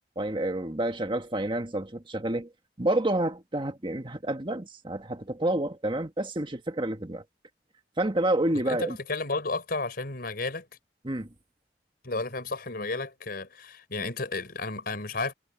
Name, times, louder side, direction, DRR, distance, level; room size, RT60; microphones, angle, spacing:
voice 1, 0.2-2.5 2.8-7.2 8.0-9.0 11.0-11.3, right 1 dB, 30° right, 1.7 m, -29 dB
voice 2, 8.5-10.7 12.0-15.3, left 3 dB, 60° left, 4.6 m, -32 dB
head